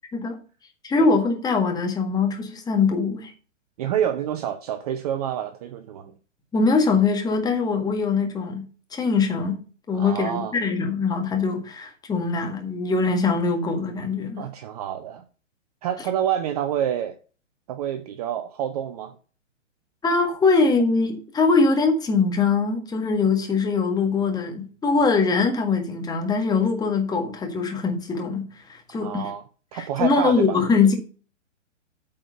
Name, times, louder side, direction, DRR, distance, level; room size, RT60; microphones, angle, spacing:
voice 1, 0.8-3.3 6.5-8.6 8.9-9.6 9.9-14.4 20.0-29.3 29.7-30.9, left 4 dB, 10° left, 1.6 m, -22 dB
voice 2, 3.8-6.1 10.0-10.5 14.4-15.2 15.8-17.2 17.7-19.2 29.0-29.4 29.7-30.6, right 10 dB, 30° right, 0.6 m, -28 dB
8.6 x 4.4 x 6.7 m
figure-of-eight pair, 125°, 38 cm